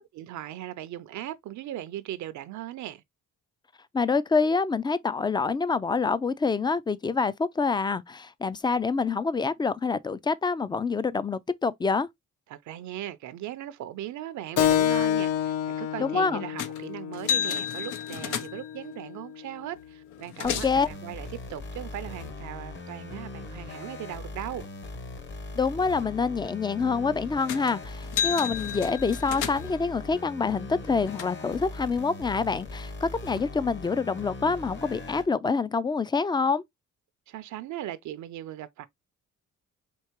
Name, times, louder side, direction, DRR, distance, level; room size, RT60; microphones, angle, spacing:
voice 1, 0.1-3.0 12.5-24.7 37.3-38.9, right 13 dB, 70° right, 0.5 m, -38 dB
voice 2, 3.9-12.1 16.0-16.4 20.4-20.9 25.6-36.6, left 4 dB, 15° left, 0.3 m, -26 dB
Keyboard (musical), 14.6-19.6, left 10 dB, 55° left, 0.6 m, -29 dB
sound 1, 16.6-16.8 17.1-18.8 19.8-19.9 20.1-20.9 27.5-27.7 28.0-29.8 30.6-31.2, left 8 dB, 85° left, 0.7 m, -32 dB
sound 2, 20.4-35.3, left 3 dB, 40° left, 1.0 m, -40 dB
4.5 x 2.8 x 2.9 m
cardioid pair, 90°, 30 cm